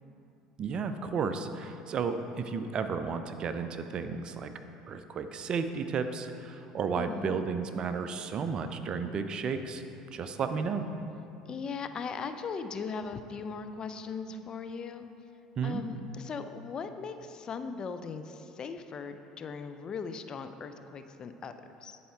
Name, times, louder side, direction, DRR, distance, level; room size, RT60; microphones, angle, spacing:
voice 1, 0.6-4.5 4.9-9.8 10.1-10.8 15.6-15.8, right 5 dB, 45° right, 9 dB, 0.5 m, -33 dB
voice 2, 7.0-7.4 11.5-15.1 15.6-22.0, left 5 dB, 40° left, 9 dB, 0.4 m, -39 dB
10.5 x 4.3 x 4.5 m, 2.8 s
hypercardioid pair, 65°, 2 cm